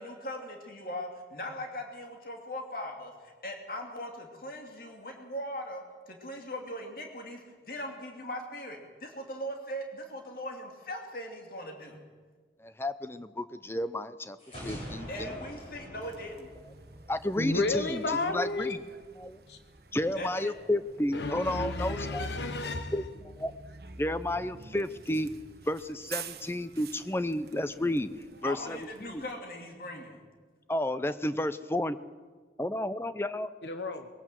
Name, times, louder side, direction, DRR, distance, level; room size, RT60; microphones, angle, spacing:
voice 1, 0.0-12.0 15.1-16.5 20.2-20.5 28.4-30.2, equal, 55° left, 2 dB, 2.8 m, -40 dB
voice 2, 12.6-14.4 14.6-15.3 16.6-16.7 17.1-18.8 19.2-19.4 19.9-22.3 22.9-23.0 23.4-23.5 24.0-25.3 25.6-28.1 28.4-29.2 30.7-32.0 32.6-33.5, left 1 dB, 15° left, 13 dB, 0.6 m, -31 dB
sound 1, 14.4-17.2, equal, 35° left, 8.0 m, -43 dB
Bus, 16.0-29.3, right 5 dB, 60° right, 1.2 m, -49 dB
voice 3, 17.4-18.7 19.5-19.6 21.1-22.9 33.6-34.1, left 2 dB, 80° left, 8 dB, 1.1 m, -32 dB
21.5 x 17.0 x 7.7 m, 1.5 s
head